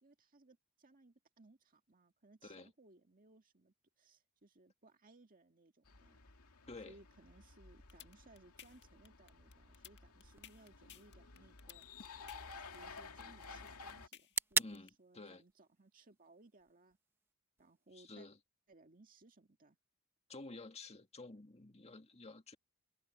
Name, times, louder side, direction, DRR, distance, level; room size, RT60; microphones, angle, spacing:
voice 1, 0.0-6.2 6.9-11.9 12.7-17.0 17.6-18.3 18.7-19.8, right 2 dB, 40° right, 2.0 m, -64 dB
sound 1, 5.9-14.1, left 4 dB, 80° left, 2.4 m, -54 dB
sound 2, 7.7-14.9, left 9 dB, 50° left, 1.7 m, -56 dB
sound 3, 10.2-18.2, right 3 dB, 10° right, 0.9 m, -45 dB
voice 2, 14.6-15.4 17.9-18.4 20.3-22.6, left 3 dB, 30° left, 1.9 m, -51 dB
head